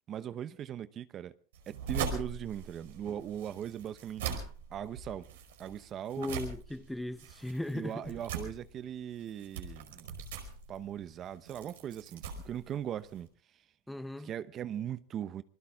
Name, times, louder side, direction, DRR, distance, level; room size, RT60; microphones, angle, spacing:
voice 1, 0.1-1.3 1.7-4.4 4.7-5.3 5.6-6.3 7.7-10.1 10.7-13.3 14.2-15.4, right 10 dB, 40° right, 0.9 m, -39 dB
sound 1, 1.5-13.3, right 6 dB, 80° right, 5.0 m, -42 dB
voice 2, 6.2-8.1 13.9-14.3, left 1 dB, 5° left, 0.9 m, -37 dB
28.0 x 20.5 x 2.4 m
hypercardioid pair, 105°, 0 cm